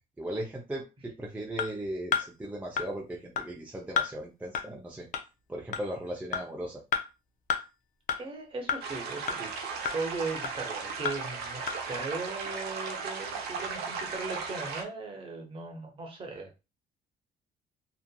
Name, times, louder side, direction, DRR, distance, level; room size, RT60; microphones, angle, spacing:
voice 1, 0.2-5.1 5.5-6.8, right 1 dB, 10° right, -1 dB, 0.5 m, -37 dB
sound 1, 1.6-1.7 2.1-2.2 2.8-2.9 3.4-3.5 4.0-4.1 4.5-4.6 5.1-5.2 5.7-5.8 6.3-6.4 6.9-7.0 7.5-7.6 8.1-8.2 8.7-8.8 9.3-9.4 9.8-10.0 10.4-10.5 11.0-11.1 11.7-11.8, left 7 dB, 50° left, 0.5 m, -28 dB
voice 2, 8.1-16.5, right 3 dB, 30° right, 3 dB, 0.9 m, -38 dB
sound 2, 8.8-14.8, right 5 dB, 75° right, 0.7 m, -36 dB
2.8 x 2.4 x 2.2 m, 0.28 s
cardioid pair, 110°, 17 cm